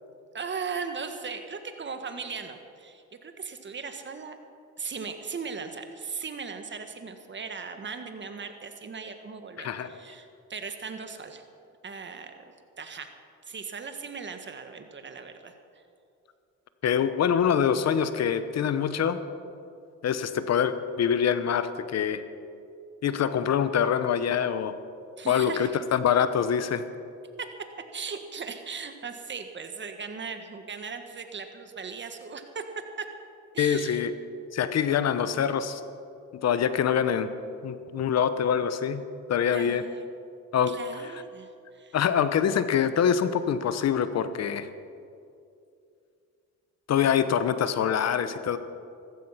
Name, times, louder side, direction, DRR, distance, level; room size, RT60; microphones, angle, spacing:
voice 1, 0.3-4.4 4.8-11.4 11.8-12.3 12.8-13.1 13.4-15.5 25.2-25.8 27.4-27.5 27.9-32.6 33.0-33.1 33.5-34.0 39.5-40.1 40.7-42.0, right 5 dB, 40° right, 7 dB, 1.6 m, -38 dB
voice 2, 9.6-10.0 16.8-19.2 20.0-22.2 23.0-24.7 25.3-26.8 33.6-34.1 34.5-35.8 36.4-37.3 37.6-39.0 39.3-39.8 40.5-40.7 41.9-44.7 46.9-48.6, left 8 dB, 60° left, 12 dB, 1.0 m, -25 dB
14.5 x 14.5 x 5.8 m, 2.5 s
cardioid pair, 90°, 30 cm